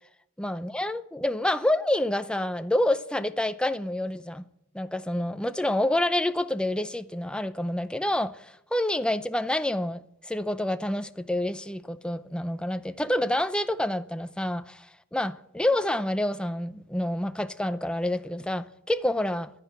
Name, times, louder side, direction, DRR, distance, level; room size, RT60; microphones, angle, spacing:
voice 1, 0.4-4.5 4.7-19.5, left 1 dB, 5° left, 0.5 m, -28 dB
11.0 x 9.8 x 8.2 m
head